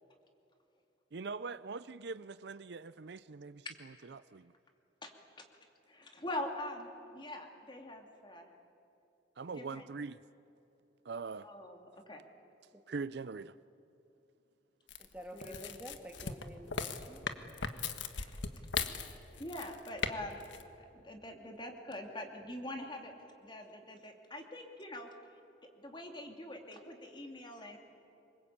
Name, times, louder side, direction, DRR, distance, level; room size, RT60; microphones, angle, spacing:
voice 1, 1.1-4.5 9.4-10.2 11.0-11.5 12.9-13.6, right 4 dB, 65° right, 0.5 m, -42 dB
voice 2, 5.0-5.5 5.9-8.5 9.5-9.8 11.4-12.2 15.3-15.7 16.2-16.3 19.4-20.4 20.8-25.1 25.8-27.8, left 1 dB, 25° left, 2.7 m, -44 dB
sound 1, 14.9-20.1 20.4-20.6, left 5 dB, 85° left, 1.5 m, -38 dB
voice 3, 15.0-17.3, equal, 10° right, 2.6 m, -50 dB
26.5 x 24.0 x 8.7 m
head